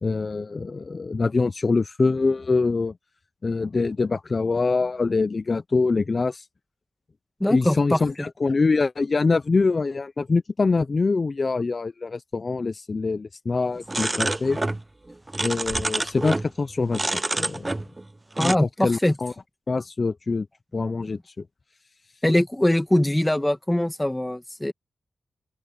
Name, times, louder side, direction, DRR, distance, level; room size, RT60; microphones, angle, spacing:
voice 1, 0.0-2.9 3.4-6.5 7.5-14.6 15.4-17.1 17.4-17.7 18.4-19.3 19.7-20.5 20.7-21.3, left 4 dB, 40° left, 0.5 m, -24 dB
voice 2, 7.4-8.0 18.4-19.2 22.2-24.7, left 1 dB, 10° left, 2.2 m, -22 dB
sound 1, 13.9-14.8 15.1-16.5 16.9-18.1 18.4-18.6, right 2 dB, 20° right, 0.8 m, -27 dB
open air
cardioid pair, 85°, 0 cm